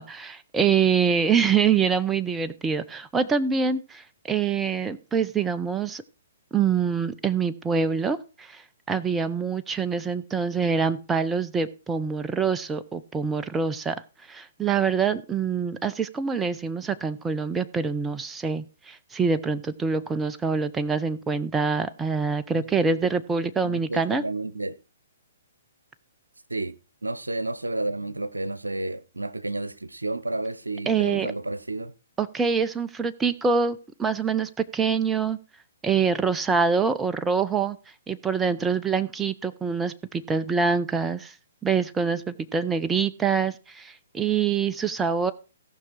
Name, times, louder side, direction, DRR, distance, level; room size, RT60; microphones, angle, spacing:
voice 1, 0.0-6.0 6.5-8.6 8.9-14.0 14.3-24.2 30.9-31.3 32.2-35.4 35.8-37.8 38.1-41.3 41.6-45.3, right 5 dB, 10° right, 0.7 m, -25 dB
voice 2, 22.5-23.0 23.6-24.7 26.5-26.7 27.0-31.9, right 2 dB, 85° right, 0.9 m, -31 dB
17.5 x 6.0 x 4.6 m
figure-of-eight pair, 125°, 0 cm